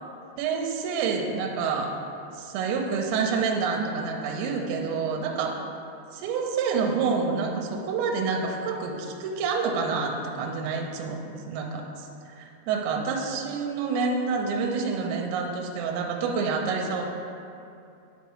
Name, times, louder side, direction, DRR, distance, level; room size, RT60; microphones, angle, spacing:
voice 1, 0.4-1.9 2.3-5.6 6.2-11.2 11.5-17.0, right 5 dB, 80° right, 1 dB, 2.9 m, -28 dB
10.5 x 4.6 x 3.1 m, 2.6 s
omnidirectional pair, 5.4 m